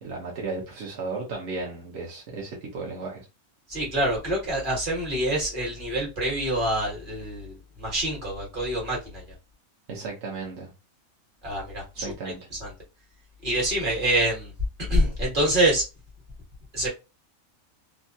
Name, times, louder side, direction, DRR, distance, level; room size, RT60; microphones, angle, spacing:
voice 1, 0.0-3.3 9.9-10.7 11.9-12.4, right 3 dB, 60° right, 1.0 m, -34 dB
voice 2, 3.7-9.2 11.4-12.7 13.4-14.5 14.9-15.8 16.7-16.9, right 1 dB, 40° right, 1.4 m, -26 dB
2.8 x 2.3 x 2.6 m
omnidirectional pair, 1.4 m